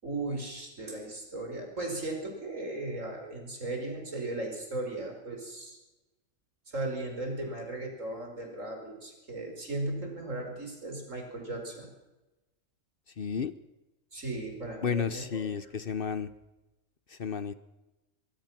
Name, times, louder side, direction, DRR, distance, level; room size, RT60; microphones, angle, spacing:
voice 1, 0.0-5.8 6.7-11.9 14.1-15.5, right 2 dB, 80° right, 3 dB, 5.5 m, -37 dB
voice 2, 13.2-13.5 14.8-16.3 17.1-17.5, left 6 dB, 50° left, 14 dB, 1.0 m, -32 dB
24.0 x 22.5 x 6.0 m, 1.0 s
omnidirectional pair, 1.3 m